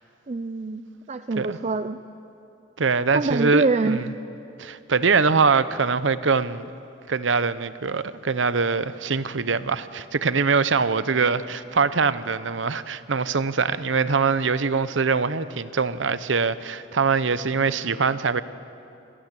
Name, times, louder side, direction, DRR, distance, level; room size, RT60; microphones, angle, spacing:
voice 1, 0.3-2.0 3.1-4.0, right 3 dB, 35° right, 0.5 m, -25 dB
voice 2, 2.8-4.1 4.6-6.7 7.1-18.4, right 5 dB, 75° right, 0.8 m, -23 dB
26.0 x 19.0 x 7.6 m
head